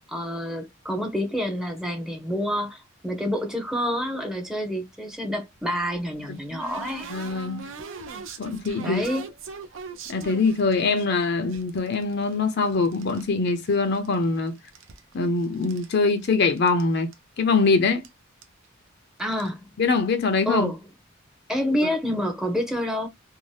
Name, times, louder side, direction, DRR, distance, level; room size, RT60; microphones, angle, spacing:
voice 1, 0.1-7.1 8.8-9.3 19.2-19.7 20.5-20.8 21.5-23.1, equal, 5° right, 0.6 m, -28 dB
sound 1, 5.6-11.1 11.5-13.3 13.6-14.3 14.6-15.9 16.2-16.3 16.6-16.8 17.1-17.2 18.0-18.1 18.4-18.7 19.2-19.5, right 4 dB, 70° right, 0.5 m, -41 dB
voice 2, 7.1-7.7 8.4-9.0 10.1-14.6 15.1-18.0 19.8-20.7, left 4 dB, 55° left, 0.5 m, -23 dB
2.7 x 2.0 x 3.2 m
head